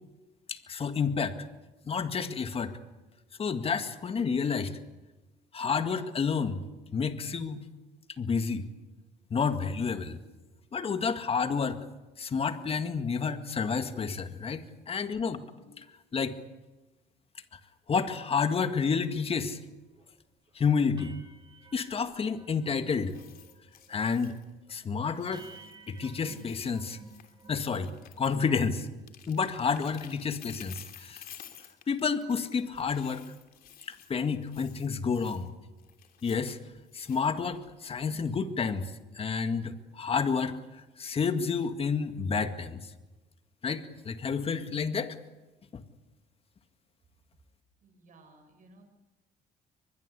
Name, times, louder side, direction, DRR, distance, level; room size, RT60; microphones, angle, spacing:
voice 1, 0.5-1.4 1.9-2.8 3.4-4.7 5.5-6.6 6.9-7.7 8.2-8.7 9.3-10.2 10.7-11.9 12.2-15.9 16.1-16.4 17.9-19.6 20.6-21.2 21.7-23.2 23.9-24.4 24.7-25.5 25.9-27.0 27.5-28.9 29.3-31.2 31.9-33.2 33.9-35.5 36.2-36.6 36.9-40.6 41.0-42.9 43.6-45.2 45.7-45.8, left 5 dB, 35° left, 9 dB, 2.0 m, -30 dB
sound 1, 19.4-19.5 19.9-20.2 20.5-20.6 21.0-22.8 23.1-23.5 23.8-24.2 24.7-24.8 25.3-27.9, right 4 dB, 25° right, 3.9 m, -54 dB
sound 2, 23.0-24.7 25.0-28.5 28.8-35.5 35.8-37.8 38.2-38.4 38.8-38.9, left 10 dB, 60° left, 3.1 m, -53 dB
voice 2, 47.8-48.8, right 2 dB, 50° right, 5 dB, 7.3 m, -57 dB
23.5 x 21.5 x 8.3 m, 1.1 s
cardioid pair, 110°, 17 cm